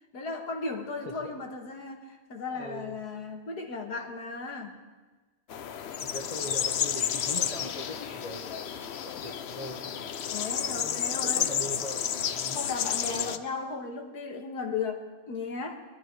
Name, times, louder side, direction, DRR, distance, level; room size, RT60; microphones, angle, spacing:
voice 1, 0.1-4.8 10.3-11.6 12.5-15.8, left 4 dB, 80° left, 3 dB, 2.2 m, -36 dB
voice 2, 2.5-3.0 6.0-10.1 10.6-12.6 13.0-13.4, left 1 dB, 25° left, 0 dB, 1.1 m, -41 dB
sound 1, 5.5-13.4, left 9 dB, 55° left, 0.7 m, -31 dB
21.5 x 12.0 x 4.7 m, 1.3 s
omnidirectional pair, 1.7 m